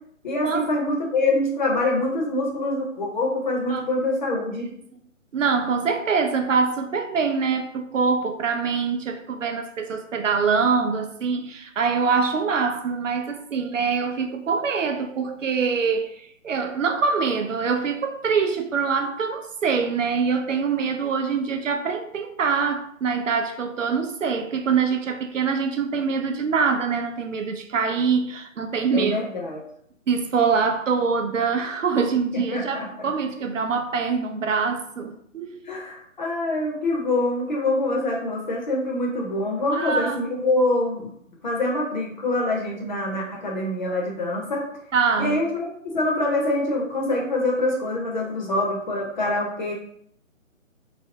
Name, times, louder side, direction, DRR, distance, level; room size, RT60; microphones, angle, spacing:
voice 1, 0.2-4.7 28.9-29.6 32.3-33.1 35.6-41.1 41.4-44.6 45.2-45.7 45.9-49.7, left 2 dB, 35° left, -1 dB, 0.7 m, -25 dB
voice 2, 5.3-29.2 30.1-35.6 39.7-40.4 44.9-45.4, right 5 dB, 65° right, 5 dB, 0.6 m, -24 dB
3.3 x 2.1 x 2.6 m, 0.66 s
figure-of-eight pair, 145°, 40 cm